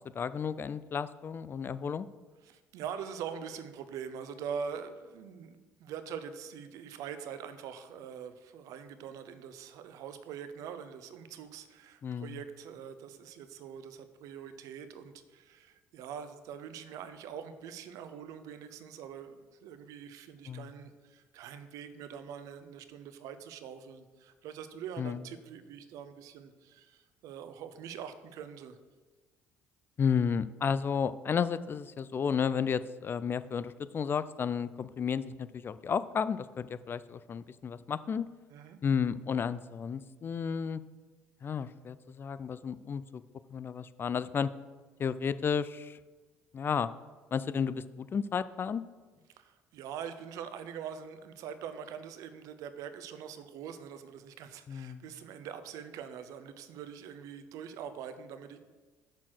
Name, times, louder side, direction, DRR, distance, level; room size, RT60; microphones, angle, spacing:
voice 1, 0.2-2.1 12.0-12.4 20.5-20.7 25.0-25.2 30.0-38.3 38.8-40.8 41.4-43.2 43.5-44.5 45.0-46.0 46.5-46.9 47.3-48.8 54.7-55.0, left 6 dB, 35° left, 15 dB, 0.3 m, -32 dB
voice 2, 2.4-19.3 19.6-28.8 38.5-38.8 49.4-58.6, right 7 dB, 70° right, 10 dB, 0.6 m, -43 dB
6.4 x 4.1 x 6.2 m, 1.3 s
hypercardioid pair, 65°, 6 cm